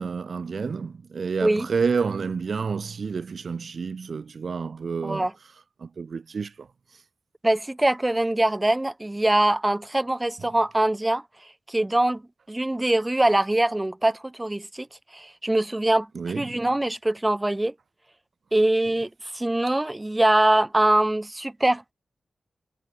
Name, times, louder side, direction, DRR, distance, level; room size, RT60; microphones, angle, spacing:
voice 1, 0.0-5.3 5.8-6.7 16.1-16.6, right 5 dB, 70° right, 2.5 m, -29 dB
voice 2, 5.0-5.3 7.4-11.2 11.7-12.2 12.5-14.9 15.1-16.1 16.4-17.7 18.5-21.9, right 1 dB, 20° right, 3.6 m, -23 dB
cardioid pair, 40°, 0 cm